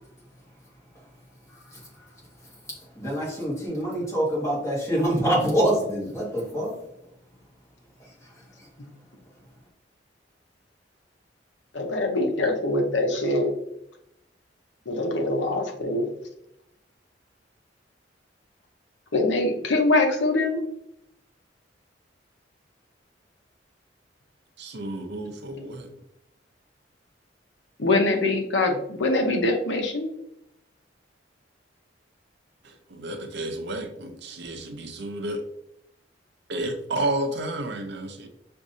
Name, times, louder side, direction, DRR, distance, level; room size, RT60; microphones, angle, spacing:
voice 1, 2.9-6.8 8.0-8.7, right 1 dB, 15° left, -6 dB, 1.6 m, -26 dB
voice 2, 11.7-13.5 14.9-16.1 19.1-20.6 27.8-30.1, left 2 dB, 80° left, 3 dB, 0.8 m, -23 dB
voice 3, 24.6-25.9 32.6-35.4 36.5-38.3, right 1 dB, 65° right, 5 dB, 0.6 m, -31 dB
6.1 x 2.6 x 2.6 m, 0.79 s
head